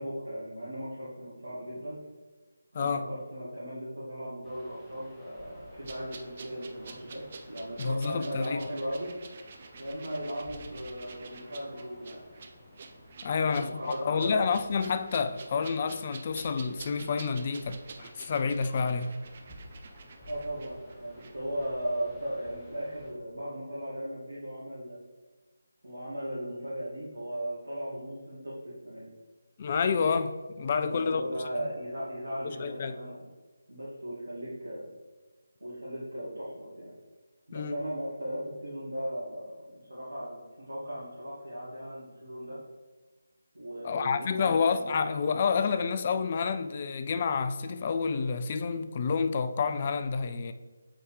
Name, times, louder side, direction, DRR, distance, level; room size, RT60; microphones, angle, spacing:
voice 1, 0.0-2.0 2.7-9.1 9.8-12.2 13.3-14.5 20.2-25.0 25.8-29.1 30.8-33.2 33.7-34.9 35.6-36.9 37.5-40.4 40.7-42.6 43.5-45.0, equal, 75° right, 2.0 m, -37 dB
voice 2, 2.7-3.1 7.8-8.6 13.2-19.2 29.6-31.2 32.4-32.9 37.5-37.8 43.8-50.5, left 5 dB, 35° left, 0.3 m, -29 dB
sound 1, 4.4-23.1, equal, 10° left, 1.0 m, -53 dB
sound 2, 5.8-21.3 21.6-21.7, right 5 dB, 40° right, 0.5 m, -49 dB
7.6 x 4.6 x 3.2 m
figure-of-eight pair, 155°, 0 cm